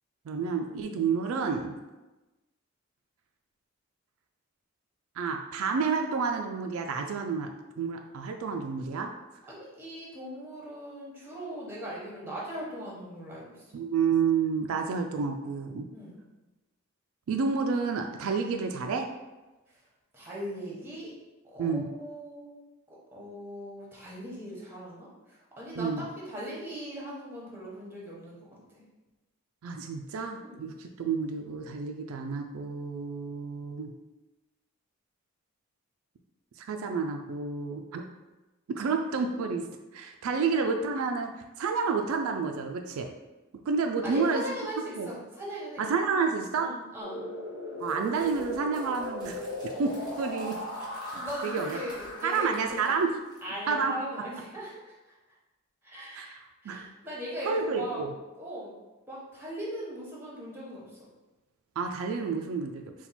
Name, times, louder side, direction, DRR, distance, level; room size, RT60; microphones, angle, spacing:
voice 1, 0.3-1.7 5.2-7.5 7.8-9.1 13.7-15.9 17.3-19.1 21.6-21.9 25.8-26.0 29.6-33.9 36.6-38.0 38.7-39.6 39.9-41.3 41.6-43.1 43.7-44.6 45.0-45.1 45.8-46.7 47.8-49.5 49.8-50.6 51.0-51.8 52.2-53.1 53.7-53.9 56.1-56.9 57.4-58.1 61.8-62.8, right 5 dB, 80° right, 4 dB, 0.4 m, -30 dB
voice 2, 9.5-13.7 15.9-16.2 20.1-21.1 21.4-22.5 22.9-28.5 30.4-30.6 40.3-40.4 44.0-45.9 46.5-47.2 51.1-53.0 53.4-55.1 55.8-56.3 56.6-58.0 58.4-58.7 59.1-60.9, equal, 10° right, -5 dB, 1.0 m, -39 dB
sound 1, 47.0-52.8, equal, 70° left, 0.9 m, -38 dB
Crumpling crinkling, 47.8-53.7, equal, 15° left, 1.2 m, -54 dB
4.2 x 2.3 x 4.2 m, 1.1 s
head